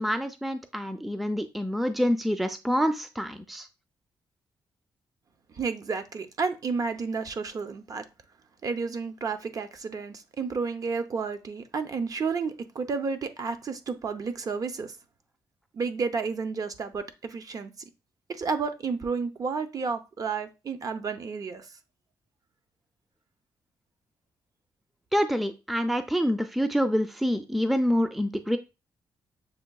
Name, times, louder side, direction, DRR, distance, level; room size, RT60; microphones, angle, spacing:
voice 1, 0.0-3.7 25.1-28.6, equal, ahead, 0.4 m, -27 dB
voice 2, 5.5-8.0 8.6-15.0 15.7-17.7 18.3-21.7, right 5 dB, 45° right, 0.6 m, -31 dB
6.8 x 2.6 x 2.3 m
cardioid pair, 105°, 8 cm